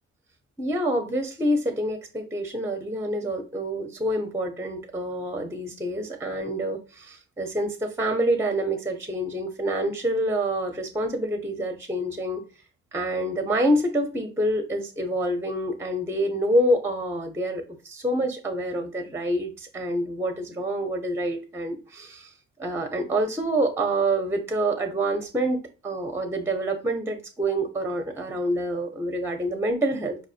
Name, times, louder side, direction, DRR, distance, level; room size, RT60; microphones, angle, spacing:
voice 1, 0.6-12.4 12.9-22.3 22.6-30.2, right 1 dB, 10° right, 6 dB, 0.6 m, -27 dB
4.7 x 2.5 x 2.4 m, 0.34 s
cardioid pair, 90°, 30 cm